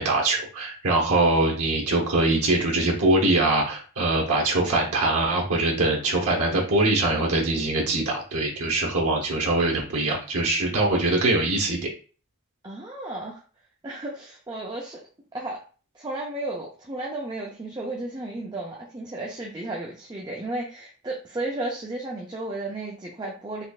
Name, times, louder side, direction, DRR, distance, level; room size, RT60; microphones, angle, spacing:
voice 1, 0.0-11.9, right 2 dB, 90° right, -1 dB, 1.0 m, -23 dB
voice 2, 12.6-13.4 13.8-15.0 15.3-15.6 15.9-23.6, right 2 dB, 20° right, -2 dB, 0.5 m, -33 dB
4.1 x 3.0 x 2.4 m, 0.39 s
head